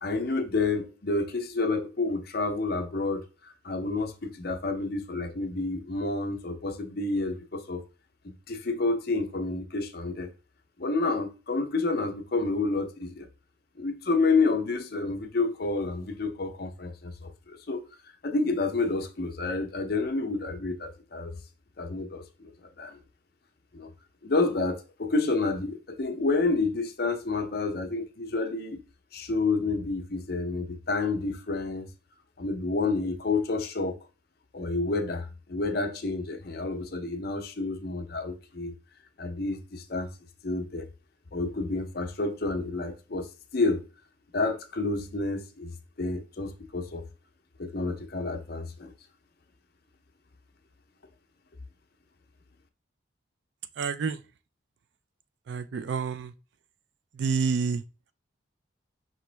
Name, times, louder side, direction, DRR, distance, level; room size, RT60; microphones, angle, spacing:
voice 1, 0.0-7.8 8.2-10.3 10.8-13.3 13.8-17.8 18.2-21.4 21.8-22.5 22.8-23.0 23.7-23.9 24.2-28.8 29.1-31.9 32.4-34.0 34.5-38.7 39.2-40.1 40.4-40.9 41.3-43.3 43.5-43.9 44.3-45.7 46.0-47.0 47.6-48.9, left 3 dB, 50° left, 0.6 m, -29 dB
voice 2, 53.8-54.2 55.5-56.3 57.2-57.8, right 5 dB, 65° right, 0.3 m, -28 dB
5.1 x 3.0 x 3.3 m
head